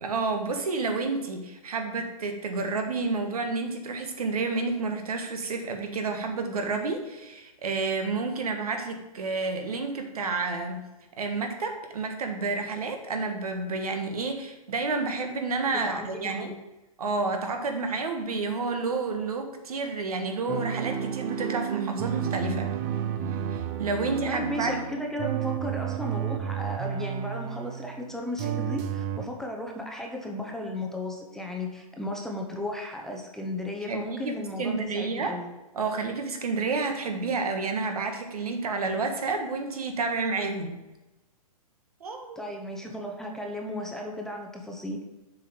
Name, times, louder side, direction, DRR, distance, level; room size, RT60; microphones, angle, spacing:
voice 1, 0.0-10.8 11.2-16.5 17.0-22.7 23.5-24.8 33.9-35.4 35.7-40.8 42.0-42.5, right 3 dB, 75° right, 5 dB, 1.4 m, -30 dB
voice 2, 15.7-16.5 24.3-35.5 42.4-45.0, left 1 dB, ahead, 1 dB, 0.8 m, -35 dB
sound 1, 20.5-28.1 28.4-29.2, right 9 dB, 30° right, 0.6 m, -31 dB
7.2 x 5.0 x 5.0 m, 1.0 s
hypercardioid pair, 135°, 19 cm